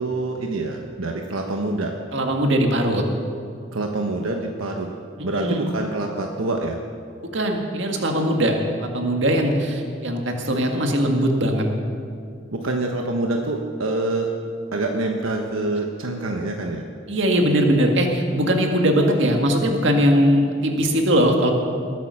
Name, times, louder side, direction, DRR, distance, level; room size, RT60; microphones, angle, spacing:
voice 1, 0.0-1.9 3.7-4.9 5.2-6.8 12.5-14.3 14.7-16.8, right 2 dB, 85° right, 2 dB, 1.2 m, -26 dB
voice 2, 2.1-3.0 5.3-5.7 7.3-11.6 17.1-21.5, equal, 60° right, 2 dB, 1.9 m, -20 dB
20.5 x 9.1 x 6.4 m, 2.3 s
head